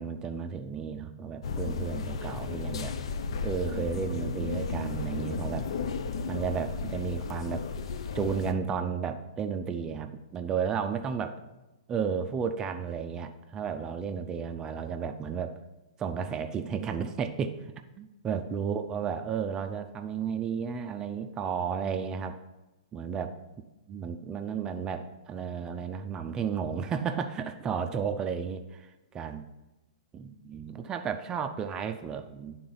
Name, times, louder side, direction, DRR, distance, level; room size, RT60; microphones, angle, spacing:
voice 1, 0.0-2.9 3.4-5.7 6.3-7.6 8.1-11.4 11.9-15.5 16.0-17.6 18.0-22.4 22.9-23.3 23.9-29.4 30.1-32.6, right 6 dB, 20° right, 7 dB, 0.4 m, -33 dB
sound 1, 1.4-8.5, left 5 dB, 65° left, 0.5 m, -34 dB
9.2 x 3.8 x 3.9 m, 1.0 s
hypercardioid pair, 120°, 3 cm